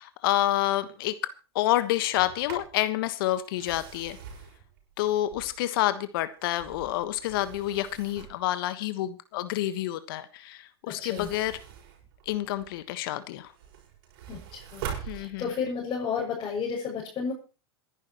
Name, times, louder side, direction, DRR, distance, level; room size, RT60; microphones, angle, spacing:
voice 1, 0.0-4.2 5.0-11.6 12.2-13.5 15.1-15.5, left 14 dB, 55° left, 12 dB, 1.4 m, -28 dB
Sliding door, 2.0-2.8 3.4-5.8 6.3-8.5 10.9-12.8 13.3-15.8, right 8 dB, 55° right, 5.8 m, -43 dB
voice 2, 14.3-17.3, left 6 dB, 30° left, -3 dB, 6.7 m, -32 dB
27.0 x 11.0 x 3.1 m, 0.35 s
hypercardioid pair, 100°, 14 cm